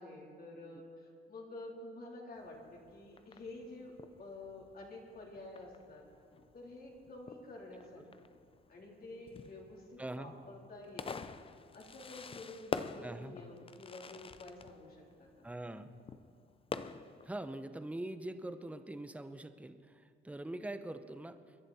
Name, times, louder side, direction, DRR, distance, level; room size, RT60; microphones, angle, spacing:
voice 1, 0.0-6.1 6.5-8.3 8.7-11.4 11.7-15.5, left 2 dB, 50° left, -2 dB, 3.7 m, -50 dB
Fireworks, 2.4-17.4, left 5 dB, 30° left, 0.6 m, -47 dB
voice 2, 10.0-10.3 13.0-13.3 15.4-15.9 17.2-21.6, right 1 dB, 5° right, 10 dB, 0.8 m, -43 dB
22.0 x 11.0 x 4.3 m, 2.3 s
cardioid pair, 90°, 20 cm